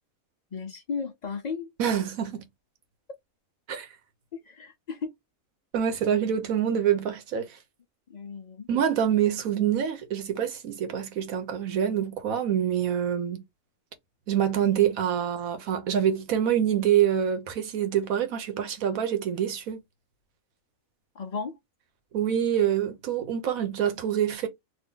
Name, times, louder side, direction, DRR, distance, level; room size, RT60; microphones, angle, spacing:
voice 1, 0.5-1.7 4.3-5.1 8.1-8.7 21.1-21.6, left 5 dB, 75° left, 0.4 m, -35 dB
voice 2, 1.8-2.4 3.7-3.9 5.7-7.5 8.7-13.4 14.3-19.8 22.1-24.5, right 9 dB, 80° right, 1.3 m, -26 dB
2.8 x 2.6 x 3.6 m
omnidirectional pair, 1.4 m